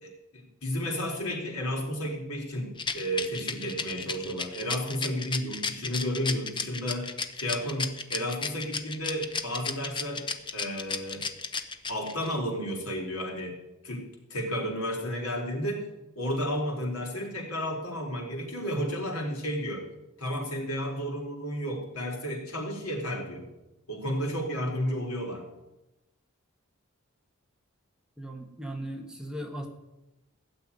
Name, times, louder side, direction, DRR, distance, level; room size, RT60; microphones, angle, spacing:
voice 1, 0.0-7.1 7.4-10.3 10.5-11.3 11.9-13.5 13.8-15.8 16.2-19.9 20.2-23.5 23.9-25.4, equal, 80° left, 0 dB, 4.2 m, -32 dB
Rattle, 2.8-12.3, left 5 dB, 20° left, 0.9 m, -33 dB
voice 2, 28.2-29.7, right 1 dB, 5° right, 2 dB, 1.4 m, -37 dB
16.0 x 7.0 x 10.0 m, 0.99 s
head